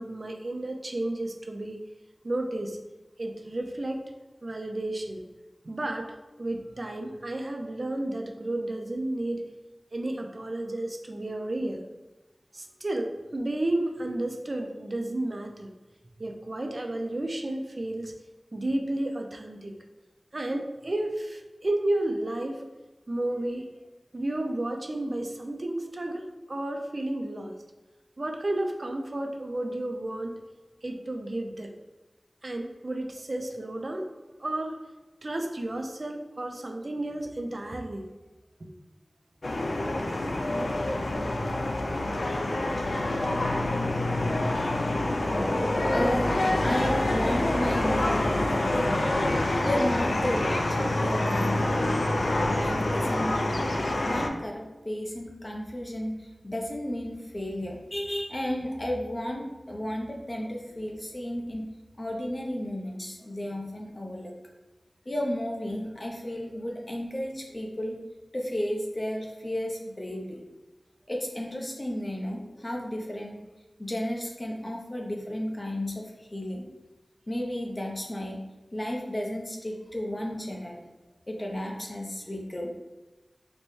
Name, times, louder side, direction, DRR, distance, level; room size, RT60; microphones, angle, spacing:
voice 1, 0.0-1.8 2.2-2.8 3.2-4.0 4.4-5.2 5.6-6.1 6.4-9.4 9.9-11.8 12.5-15.7 16.2-18.1 18.5-19.7 20.3-22.6 23.1-23.7 24.1-27.5 28.2-30.4 30.8-31.7 32.4-34.1 34.4-34.8 35.2-38.1 38.6-38.7 41.9-42.1, right 1 dB, 50° right, 3 dB, 0.4 m, -32 dB
sound 1, 39.4-54.3, left 1 dB, 75° left, 0.3 m, -26 dB
voice 2, 45.9-49.0 49.6-52.1 52.4-53.5 54.0-61.6 62.0-64.3 65.1-68.0 68.3-70.4 71.1-73.4 73.8-76.6 77.3-78.4 78.7-80.8 81.3-82.7, left 1 dB, 35° left, 0 dB, 0.6 m, -33 dB
4.0 x 2.2 x 3.1 m, 1.1 s
wide cardioid pair, 60°, 0 cm